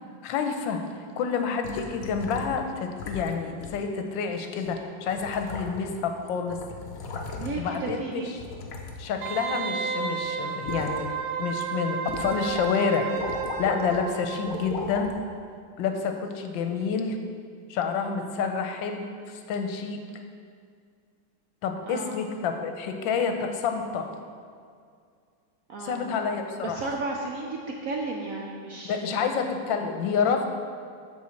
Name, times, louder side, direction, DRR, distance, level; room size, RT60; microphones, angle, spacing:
voice 1, 0.2-0.8 1.2-6.6 7.6-8.4 9.0-11.1 11.4-13.1 13.6-15.1 15.8-17.2 17.7-20.0 21.6-24.1 25.8-26.9 28.8-30.5, left 6 dB, 85° left, 5 dB, 1.4 m, -28 dB
sound 1, 1.6-2.6 3.0-3.3 3.6-3.8 4.7-4.8 5.1-6.0 6.3-7.8 8.4-9.9 10.2-11.0 11.5-11.6 12.1-12.7 12.9-14.0 14.4-15.1 15.8-15.9, left 4 dB, 60° left, 1.0 m, -37 dB
voice 2, 7.4-8.3 21.9-22.1 25.7-26.1 26.6-29.2, right 3 dB, 65° right, 0 dB, 0.8 m, -33 dB
Wind instrument woodwind instrument, 9.2-14.8 15.1-15.2, right 6 dB, 80° right, 1.3 m, -32 dB
7.2 x 4.2 x 6.4 m, 2.2 s
omnidirectional pair, 2.0 m